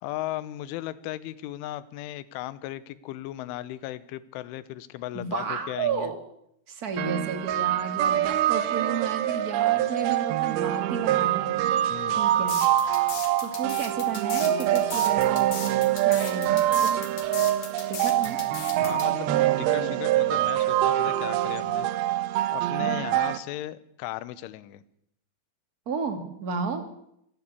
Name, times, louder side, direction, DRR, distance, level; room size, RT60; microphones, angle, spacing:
voice 1, 0.0-6.1 11.9-12.3 18.8-21.9 22.5-24.8, left 14 dB, 80° left, 15 dB, 3.3 m, -36 dB
voice 2, 5.1-6.2 6.7-11.5 12.1-12.6 13.4-17.1 17.9-18.4 22.8-23.0 25.8-26.8, right 5 dB, 35° right, 6 dB, 1.5 m, -32 dB
sound 1, 7.0-23.4, right 13 dB, 85° right, 2.2 m, -25 dB
sound 2, 12.5-19.1, left 7 dB, 50° left, 3.4 m, -37 dB
sound 3, 16.3-22.4, right 9 dB, 65° right, 3.2 m, -45 dB
26.5 x 11.5 x 8.5 m, 0.75 s
omnidirectional pair, 5.8 m